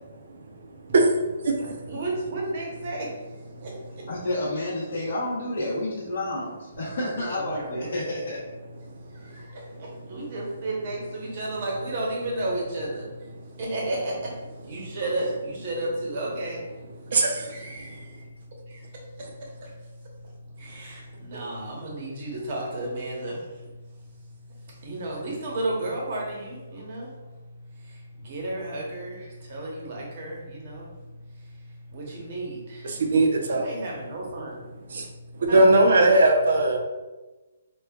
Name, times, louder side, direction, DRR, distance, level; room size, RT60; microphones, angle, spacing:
voice 1, 0.9-1.9 17.1-17.3 32.8-33.7 34.9-35.1 35.4-36.8, right 2 dB, 55° right, 2 dB, 0.6 m, -20 dB
voice 2, 1.6-4.1 7.3-7.9 8.9-33.0 33.3-35.6, right 1 dB, 35° right, -2 dB, 0.9 m, -34 dB
voice 3, 4.1-8.4, left 1 dB, 55° left, -10 dB, 1.1 m, -30 dB
5.1 x 2.4 x 2.4 m, 1.2 s
hypercardioid pair, 170°, 0 cm